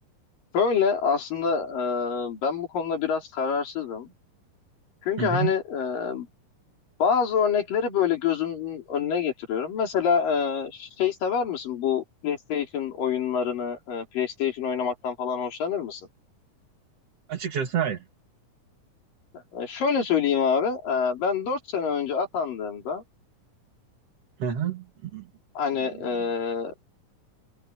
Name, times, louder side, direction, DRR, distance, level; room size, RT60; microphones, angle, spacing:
voice 1, 0.5-4.1 5.0-6.3 7.0-16.0 19.5-23.0 25.6-26.7, left 6 dB, 85° left, 5.3 m, -26 dB
voice 2, 5.2-5.5 17.3-18.0 24.4-25.3 25.9-26.2, right 8 dB, 50° right, 2.6 m, -29 dB
omnidirectional pair, 3.8 m